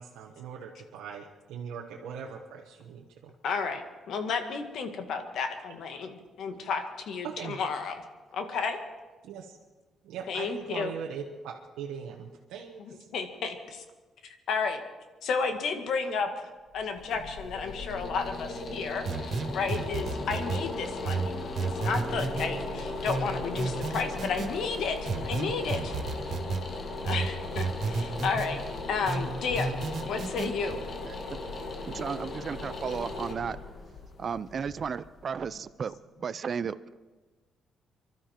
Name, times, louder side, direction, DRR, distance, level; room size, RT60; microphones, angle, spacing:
voice 1, 0.0-3.3 7.2-7.6 9.2-9.6 10.0-13.1, right 7 dB, 90° right, 0 dB, 1.2 m, -40 dB
voice 2, 3.4-8.0 8.3-8.8 10.3-10.9 12.8-13.8 14.5-14.8 15.2-21.4 21.7-26.0 27.0-28.6 28.9-29.8 30.1-30.9, left 5 dB, 70° left, 6 dB, 1.8 m, -32 dB
sound 1, 16.7-35.7, left 2 dB, 50° left, 1.9 m, -37 dB
sound 2, 19.1-20.6 21.1-22.5 23.1-24.5 25.1-26.6 27.1-28.5 29.1-30.5, right 4 dB, 65° right, 2.3 m, -31 dB
voice 3, 31.9-33.6 34.2-37.0, right 6 dB, 50° right, 13 dB, 0.5 m, -34 dB
24.0 x 12.5 x 4.5 m, 1.3 s
cardioid pair, 90°, 0 cm